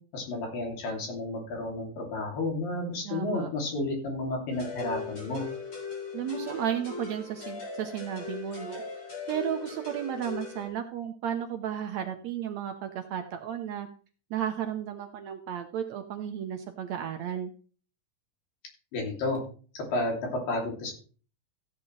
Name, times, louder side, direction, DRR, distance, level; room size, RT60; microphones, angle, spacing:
voice 1, 0.1-5.4 18.9-19.4 19.7-20.9, left 2 dB, 85° left, 1 dB, 4.6 m, -31 dB
voice 2, 3.0-3.5 6.1-8.8 9.3-13.9 14.3-17.5, right 9 dB, 75° right, 6 dB, 1.7 m, -33 dB
sound 1, 4.5-10.7, left 4 dB, 35° left, 4.4 m, -39 dB
15.5 x 8.4 x 3.2 m, 0.40 s
omnidirectional pair, 3.9 m